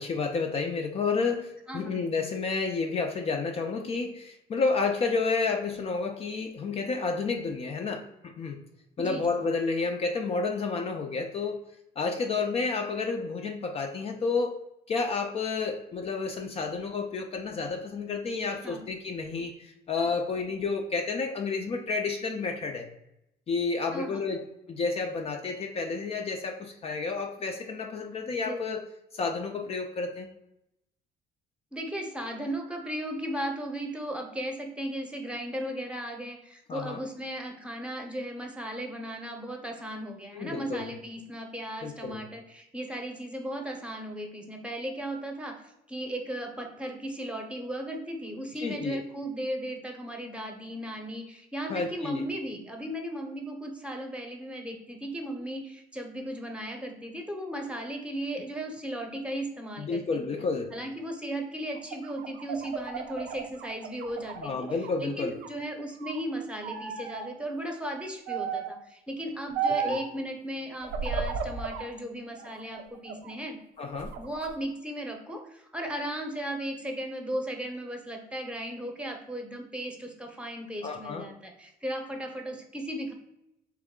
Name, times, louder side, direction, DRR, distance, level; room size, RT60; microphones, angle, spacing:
voice 1, 0.0-8.6 9.0-11.6 12.0-22.9 23.5-28.8 29.1-30.3 36.7-37.0 40.3-40.9 41.8-42.2 48.6-49.0 51.7-52.2 59.8-60.7 64.4-65.3 69.8-70.0 73.8-74.2 80.8-81.3, left 4 dB, 35° left, 3 dB, 0.4 m, -30 dB
voice 2, 9.0-9.5 18.3-18.9 23.9-24.3 28.3-28.6 31.7-60.2 60.7-64.7 65.0-73.6 74.2-83.1, right 1 dB, 5° right, 2 dB, 0.7 m, -36 dB
sound 1, 61.7-65.0 65.3-66.2 66.6-67.3 68.3-68.8 69.5-70.1 70.8-71.9 72.4-73.3 73.8-74.5, right 5 dB, 80° right, 0.5 m, -34 dB
3.6 x 3.1 x 3.6 m, 0.85 s
cardioid pair, 110°, 17 cm